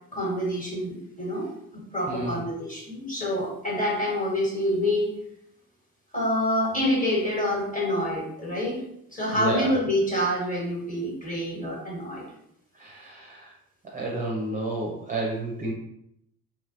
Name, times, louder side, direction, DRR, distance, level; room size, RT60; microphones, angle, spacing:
voice 1, 0.1-5.1 6.1-8.8 9.1-12.3, left 1 dB, 15° left, -4 dB, 1.3 m, -27 dB
voice 2, 2.1-2.4 9.3-9.7 12.7-13.5 13.9-15.7, right 2 dB, 20° right, -3 dB, 0.6 m, -30 dB
3.1 x 2.8 x 2.5 m, 0.76 s
figure-of-eight pair, 45°, 47 cm